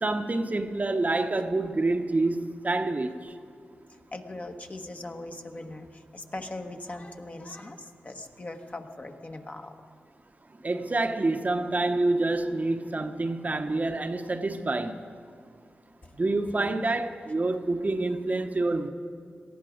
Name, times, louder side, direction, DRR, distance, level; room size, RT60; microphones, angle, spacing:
voice 1, 0.0-3.2 10.6-15.0 16.2-18.9, right 2 dB, 40° right, 0.9 m, -27 dB
voice 2, 4.1-5.9 6.1-9.7, left 2 dB, 35° left, 1.3 m, -40 dB
18.5 x 13.5 x 5.1 m
cardioid pair, 50°, 4 cm